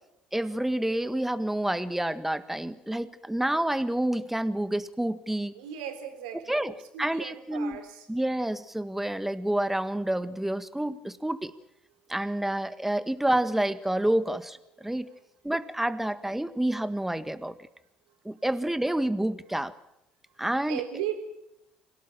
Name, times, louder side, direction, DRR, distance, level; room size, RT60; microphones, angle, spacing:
voice 1, 0.3-5.5 6.5-6.7 7.0-7.8 8.1-11.5 12.1-15.1 15.4-17.6 18.3-19.7 20.4-20.8, right 1 dB, 5° right, 13 dB, 1.7 m, -28 dB
voice 2, 5.5-8.1 14.8-14.9 20.7-21.1, right 11 dB, 75° right, 6 dB, 3.8 m, -37 dB
27.0 x 17.5 x 7.4 m, 0.86 s
hypercardioid pair, 60°, 4 cm